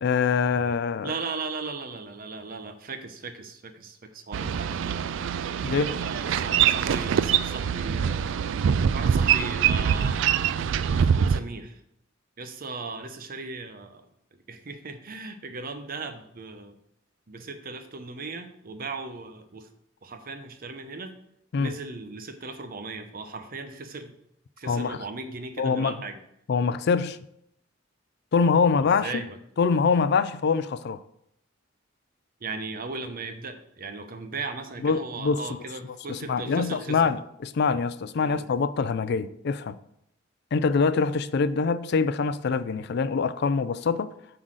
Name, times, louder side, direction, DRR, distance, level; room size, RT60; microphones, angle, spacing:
voice 1, 0.0-1.1 5.6-5.9 21.5-21.7 24.7-25.0 25.6-26.0 26.5-27.2 28.3-29.2 29.6-31.0 34.8-35.4 36.1-37.2 37.4-39.8 40.5-44.1, left 5 dB, 55° left, 0.4 m, -24 dB
voice 2, 1.0-5.0 5.7-8.4 8.9-10.2 11.0-11.8 12.4-14.1 14.3-16.8 17.3-19.7 20.0-21.1 21.6-24.1 24.6-26.2 28.8-29.4 32.4-37.1 38.2-38.4, right 3 dB, 50° right, 0.8 m, -37 dB
Boat Water vehicle, 4.3-11.4, right 8 dB, 70° right, 0.3 m, -24 dB
7.5 x 3.9 x 6.3 m
head